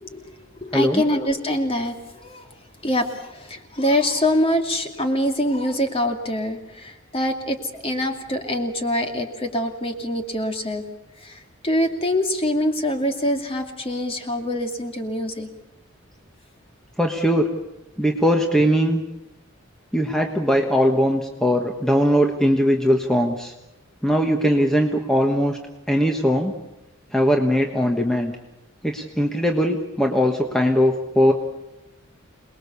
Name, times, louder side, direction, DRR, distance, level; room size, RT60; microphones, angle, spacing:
voice 1, 0.0-0.3 0.6-2.5 2.8-7.6 7.8-10.8 11.2-15.5, left 1 dB, 30° left, 4 dB, 2.5 m, -24 dB
voice 2, 0.7-1.0 17.0-17.5 18.0-19.0 19.9-23.5 24.0-25.6 25.9-26.5 27.1-28.3 28.8-31.3, equal, 5° left, 2 dB, 1.4 m, -20 dB
27.5 x 20.0 x 7.0 m, 0.97 s
head